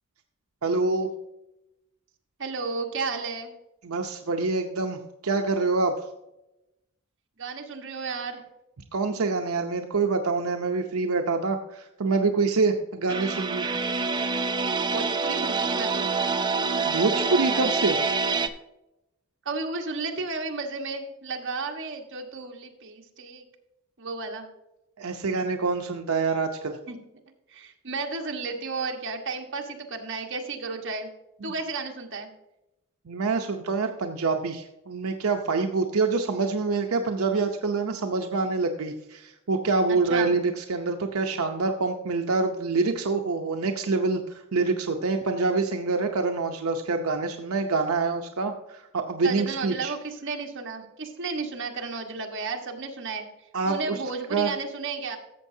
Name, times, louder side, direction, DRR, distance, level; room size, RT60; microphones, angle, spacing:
voice 1, 0.6-1.1 3.8-6.1 8.9-13.7 16.8-18.2 25.0-26.8 31.4-31.5 33.1-49.9 53.5-54.0 54.3-54.5, right 3 dB, 85° right, 4 dB, 0.7 m, -26 dB
voice 2, 2.4-3.5 7.4-8.4 14.9-16.1 19.4-23.4 24.0-24.5 26.9-27.0 27.5-31.1 31.4-32.3 39.9-40.3 49.2-53.3 53.7-55.2, right 4 dB, 60° right, 2 dB, 1.4 m, -33 dB
sound 1, 13.1-18.5, right 4 dB, 20° right, 0.5 m, -26 dB
13.5 x 7.1 x 2.7 m, 0.92 s
head